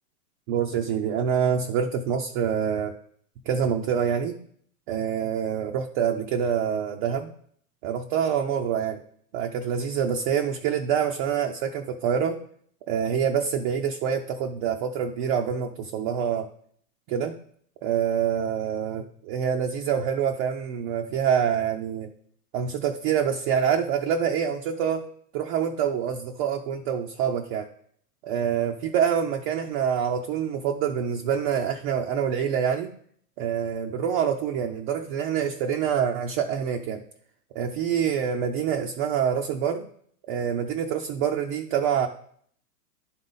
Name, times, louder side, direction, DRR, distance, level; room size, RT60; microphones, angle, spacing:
voice 1, 0.5-2.9 3.5-4.4 4.9-7.3 7.8-9.0 9.3-12.4 12.9-16.5 17.1-17.4 17.8-22.1 22.5-25.0 25.3-27.7 28.2-32.9 33.4-37.0 37.6-39.9 40.3-42.1, right 8 dB, 35° right, 3 dB, 0.4 m, -26 dB
10.5 x 4.0 x 3.9 m, 0.63 s
hypercardioid pair, 115°, 48 cm